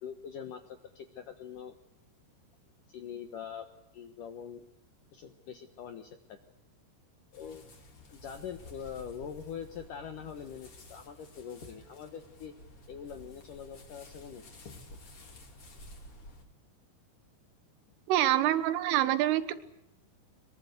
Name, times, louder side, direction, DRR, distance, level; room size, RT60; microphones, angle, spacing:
voice 1, 0.0-1.8 2.9-3.7 3.9-4.7 5.1-6.4 7.3-7.7 8.1-12.5 12.9-14.4, left 8 dB, 85° left, 7 dB, 1.8 m, -43 dB
sound 1, 7.3-16.4, left 1 dB, 30° left, 3.3 m, -52 dB
voice 2, 18.1-19.6, right 13 dB, 75° right, 13 dB, 3.7 m, -26 dB
23.0 x 22.5 x 8.1 m, 0.85 s
omnidirectional pair, 5.9 m